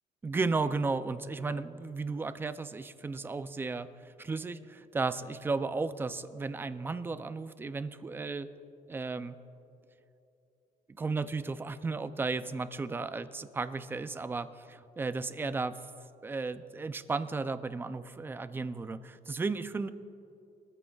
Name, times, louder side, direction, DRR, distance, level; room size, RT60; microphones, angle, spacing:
voice 1, 0.2-8.5 8.9-9.4 10.9-15.8 16.2-19.9, right 3 dB, 15° right, 12 dB, 0.4 m, -34 dB
22.5 x 14.0 x 2.3 m, 2.8 s
cardioid pair, 165°, 15 cm